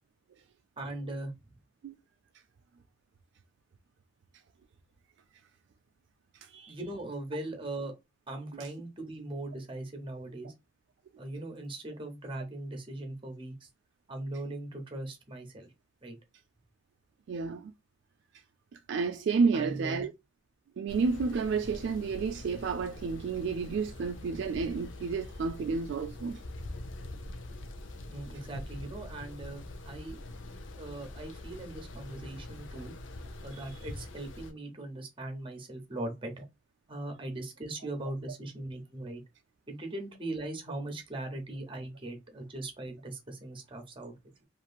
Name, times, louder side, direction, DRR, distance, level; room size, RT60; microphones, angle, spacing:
voice 1, 0.8-1.3 6.7-7.9 8.3-10.5 11.2-13.7 14.1-15.7 16.0-16.1 19.5-20.0 28.1-30.2 30.8-32.9 33.4-36.4 36.9-39.2 39.7-44.1, right 2 dB, 25° right, 0.9 m, -40 dB
voice 2, 6.4-6.7 8.5-8.7 17.3-17.7 18.9-20.1 20.8-26.4 33.5-33.6, right 5 dB, 65° right, 0.3 m, -31 dB
sound 1, 20.9-34.5, left 1 dB, 75° left, 0.6 m, -44 dB
3.0 x 2.5 x 2.3 m
head